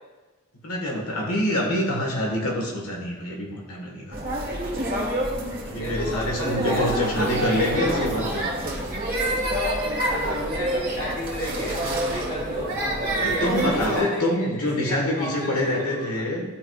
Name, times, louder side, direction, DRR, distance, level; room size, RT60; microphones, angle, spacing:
voice 1, 0.6-4.2 5.6-8.7 13.1-16.4, left 1 dB, 85° left, 0 dB, 1.6 m, -26 dB
sound 1, 4.1-14.0, right 1 dB, 40° right, 1.4 m, -27 dB
voice 2, 5.7-7.3 7.6-8.0 10.1-16.1, left 1 dB, 65° left, -6 dB, 2.0 m, -33 dB
12.0 x 4.6 x 2.5 m, 1.2 s
head